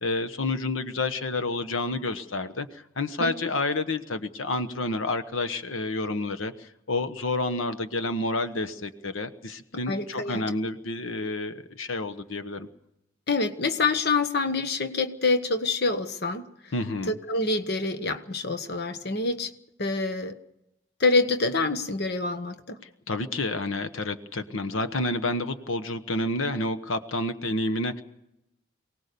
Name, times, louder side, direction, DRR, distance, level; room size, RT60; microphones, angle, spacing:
voice 1, 0.0-12.7 16.7-17.1 23.1-28.0, left 2 dB, 80° left, 10 dB, 1.1 m, -29 dB
voice 2, 9.9-10.4 13.3-16.7 17.1-19.5 19.8-20.4 21.0-22.8, left 3 dB, 50° left, 8 dB, 1.2 m, -26 dB
23.5 x 18.5 x 6.9 m, 0.83 s
head